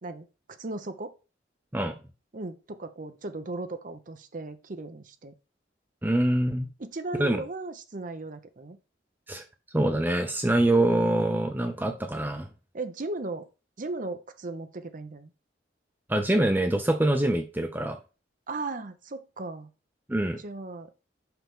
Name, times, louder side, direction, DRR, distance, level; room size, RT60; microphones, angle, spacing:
voice 1, 0.0-1.1 2.3-5.3 6.8-8.8 12.7-13.5 13.8-15.3 18.5-19.7 20.4-20.9, right 2 dB, 45° right, 10 dB, 0.7 m, -36 dB
voice 2, 6.0-6.7 7.2-7.4 9.3-9.4 9.7-12.5 16.1-18.0 20.1-20.4, right 1 dB, 10° right, 6 dB, 0.5 m, -24 dB
5.8 x 5.7 x 3.6 m, 0.32 s
head